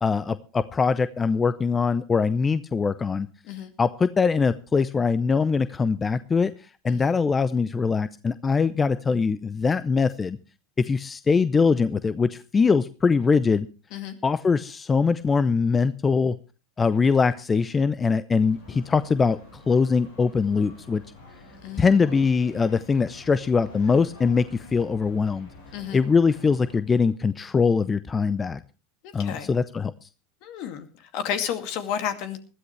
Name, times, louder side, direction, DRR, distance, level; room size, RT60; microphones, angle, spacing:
voice 1, 0.0-3.3 3.8-6.5 6.8-10.4 10.8-13.7 14.2-16.4 16.8-21.0 21.8-25.5 25.9-28.6 29.1-30.1, left 5 dB, 25° left, 15 dB, 0.7 m, -22 dB
sound 1, 18.4-26.8, left 2 dB, 90° left, 6.6 m, -48 dB
voice 2, 21.6-22.0 25.7-26.0 29.0-29.5 30.4-30.9 31.1-32.4, left 8 dB, 60° left, 9 dB, 2.3 m, -31 dB
20.5 x 13.0 x 3.3 m, 0.31 s
hypercardioid pair, 90°, 0 cm